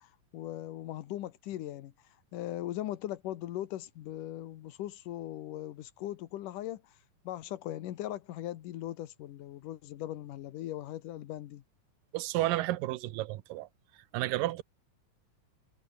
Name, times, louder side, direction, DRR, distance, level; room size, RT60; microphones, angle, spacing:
voice 1, 0.0-1.9 2.3-6.8 7.2-11.6, left 13 dB, 75° left, 2.7 m, -39 dB
voice 2, 12.1-13.7 14.1-14.6, right 16 dB, 85° right, 2.5 m, -31 dB
omnidirectional pair, 3.8 m